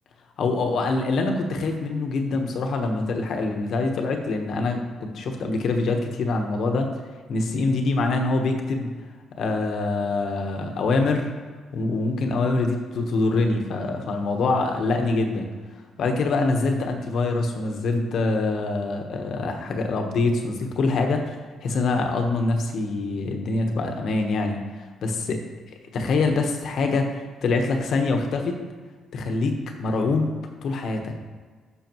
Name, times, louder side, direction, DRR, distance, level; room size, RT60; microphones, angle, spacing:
voice 1, 0.4-6.9 7.3-8.9 9.4-11.3 11.7-15.5 16.0-21.4 21.6-25.4 25.9-28.5 29.1-30.3 30.6-31.3, left 3 dB, 65° left, 4 dB, 1.3 m, -24 dB
13.0 x 6.3 x 3.1 m, 1.5 s
cardioid pair, 90°, 0 cm